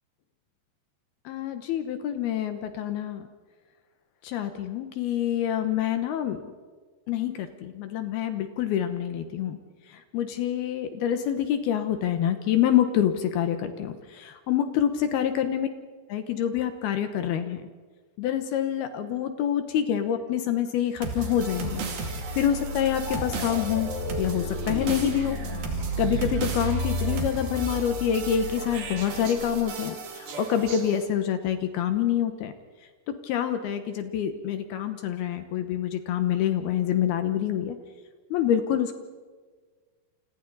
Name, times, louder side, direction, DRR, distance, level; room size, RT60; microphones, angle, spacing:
voice 1, 1.3-3.2 4.2-6.5 7.1-9.6 10.1-15.7 16.1-17.6 18.2-21.8 22.4-23.9 24.2-25.4 26.0-32.5 33.2-37.8 38.3-39.0, left 10 dB, 70° left, 8 dB, 2.6 m, -26 dB
sound 1, 21.0-31.0, right 4 dB, 60° right, 4.1 m, -33 dB
sound 2, 23.1-29.7, left 5 dB, 50° left, 5.3 m, -35 dB
28.5 x 28.0 x 4.0 m, 1.4 s
omnidirectional pair, 5.3 m